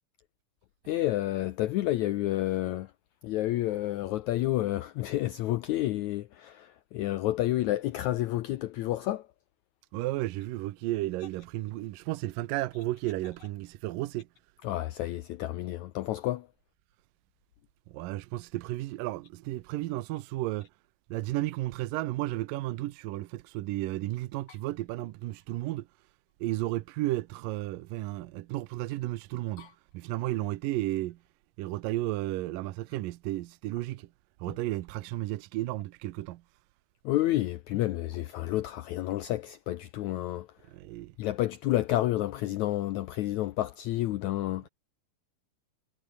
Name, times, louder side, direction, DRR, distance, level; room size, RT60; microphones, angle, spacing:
voice 1, 0.9-2.9 3.2-9.3 14.6-16.5 29.6-29.7 37.0-40.5 41.2-44.7, left 15 dB, 85° left, 1.7 m, -30 dB
voice 2, 9.9-14.3 17.9-20.7 21.1-25.9 26.4-31.2 31.6-34.1 34.4-36.4 40.7-41.2, right 17 dB, 80° right, 2.4 m, -33 dB
omnidirectional pair, 4.2 m